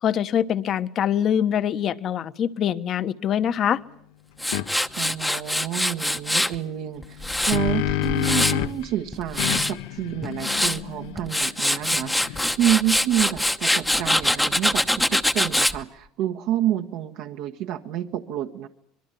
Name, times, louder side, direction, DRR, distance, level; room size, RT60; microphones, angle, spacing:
voice 1, 0.0-3.8, left 9 dB, 40° left, 13 dB, 1.2 m, -24 dB
Tools, 4.4-6.6 7.0-8.7 9.1-9.7 10.2-10.8 11.2-15.8, left 1 dB, 5° left, 1.0 m, -23 dB
sound 1, 4.5-4.7 7.1-8.9 9.4-12.7, left 14 dB, 90° left, 1.1 m, -29 dB
voice 2, 5.0-18.7, right 12 dB, 65° right, 4 dB, 1.4 m, -28 dB
25.0 x 22.5 x 9.2 m, 0.69 s
cardioid pair, 135°, 0 cm